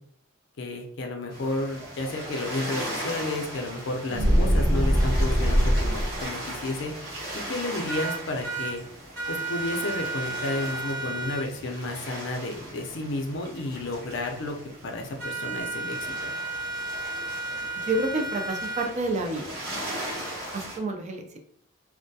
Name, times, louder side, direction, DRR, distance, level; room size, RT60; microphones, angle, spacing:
voice 1, 0.6-6.9 7.5-8.8 9.3-14.6 14.8-16.3, left 2 dB, 60° left, 3 dB, 0.4 m, -32 dB
sound 1, 1.3-20.8, right 1 dB, 55° right, 1.1 m, -38 dB
sound 2, 4.1-6.3, equal, 15° right, 0.9 m, -22 dB
sound 3, 7.9-8.7 9.2-11.4 15.2-18.9, right 3 dB, 75° right, 0.8 m, -33 dB
voice 2, 17.8-19.6 20.5-21.4, right 2 dB, 35° right, 3 dB, 0.3 m, -29 dB
2.2 x 2.1 x 2.6 m, 0.64 s
head